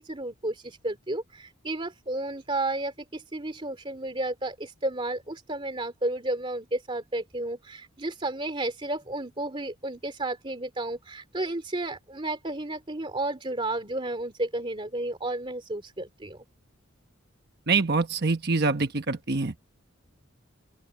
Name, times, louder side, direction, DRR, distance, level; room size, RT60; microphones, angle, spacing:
voice 1, 0.0-16.4, right 2 dB, 25° right, 2.6 m, -32 dB
voice 2, 17.7-19.5, right 4 dB, 50° right, 1.1 m, -25 dB
open air
head